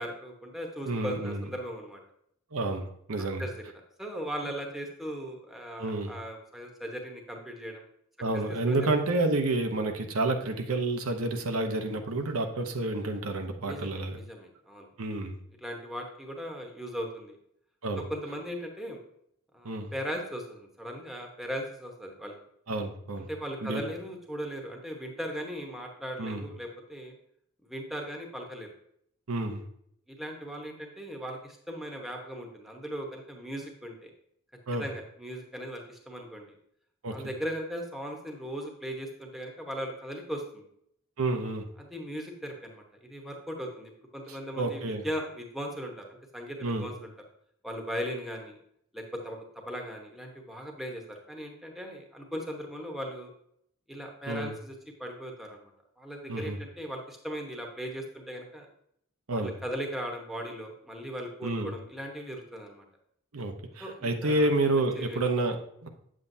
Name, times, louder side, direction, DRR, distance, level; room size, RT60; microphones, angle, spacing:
voice 1, 0.0-2.0 3.2-3.6 4.0-7.8 8.5-8.9 13.7-14.9 15.6-17.4 18.1-19.0 19.5-22.3 23.3-27.1 27.6-28.7 30.1-34.1 34.8-36.5 37.1-40.6 41.8-47.1 47.6-48.6 48.9-53.3 53.9-54.7 55.0-55.7 56.0-58.7 59.3-62.8 63.8-64.5 64.8-65.2, equal, ahead, 1 dB, 1.0 m, -38 dB
voice 2, 0.8-1.4 2.5-3.5 5.8-6.1 8.2-14.2 15.0-15.4 17.8-18.0 19.6-19.9 22.7-23.3 23.6-23.8 26.2-26.4 29.3-29.6 34.7-34.9 37.0-37.2 41.2-41.6 44.3-45.1 46.6-46.9 54.3-54.5 56.3-56.6 59.3-59.5 61.4-61.7 63.3-65.6 65.8-65.9, right 2 dB, 85° right, 5 dB, 0.8 m, -29 dB
8.5 x 7.6 x 2.7 m, 0.71 s
head